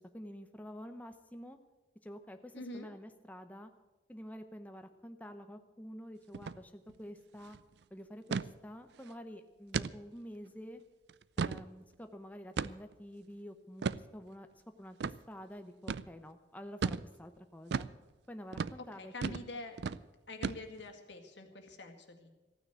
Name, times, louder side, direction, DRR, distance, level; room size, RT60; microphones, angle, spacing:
voice 1, 0.0-1.6 2.0-3.7 4.1-7.6 7.9-10.8 11.4-17.9 18.3-19.4, equal, 10° left, 6 dB, 0.7 m, -49 dB
voice 2, 2.5-2.9 19.0-19.8 20.3-22.3, left 2 dB, 85° left, 5 dB, 2.0 m, -45 dB
sound 1, 6.3-6.6 6.9-7.0 7.3-7.6 8.3-8.5 9.0-9.1 9.7-9.9 10.5-10.6 11.1-11.7 12.6-12.9 13.8-14.0 15.0-15.2 15.9-16.1 16.8-17.1 17.7-17.9 18.5-18.8 19.2-19.5 19.8-20.0 20.4-20.9, right 5 dB, 70° right, 0.4 m, -35 dB
15.0 x 9.6 x 8.0 m, 1.2 s
head